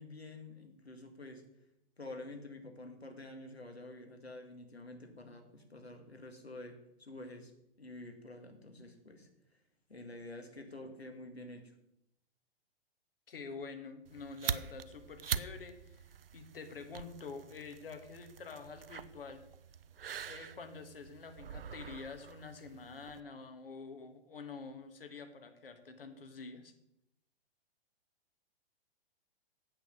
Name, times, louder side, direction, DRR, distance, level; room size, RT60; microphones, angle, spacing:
voice 1, 0.0-1.4 2.0-7.5 7.8-9.3 9.9-11.7, left 2 dB, 80° left, 4 dB, 2.2 m, -48 dB
voice 2, 13.3-16.0 16.3-19.4 20.2-26.7, left 4 dB, 65° left, 7 dB, 1.7 m, -47 dB
sound 1, 14.1-23.2, right 7 dB, 65° right, 0.6 m, -44 dB
8.8 x 7.9 x 6.3 m, 0.80 s
figure-of-eight pair, 110°, 31 cm